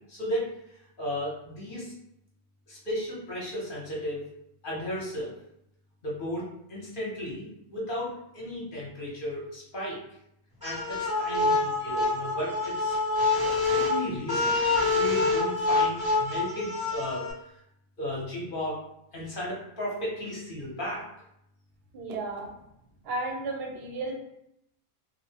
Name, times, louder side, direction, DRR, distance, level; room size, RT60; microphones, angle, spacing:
voice 1, 0.1-0.5 1.0-1.9 2.7-4.3 4.6-5.3 6.0-10.0 10.6-13.0 13.4-14.6 14.9-17.3 18.0-18.8 19.1-21.1, equal, 50° left, -5 dB, 0.7 m, -34 dB
sound 1, 10.6-17.3, left 3 dB, 25° right, 0.5 m, -26 dB
voice 2, 21.9-22.5 23.0-24.1, right 2 dB, 60° right, 1 dB, 0.7 m, -33 dB
2.7 x 2.0 x 2.7 m, 0.78 s
omnidirectional pair, 1.4 m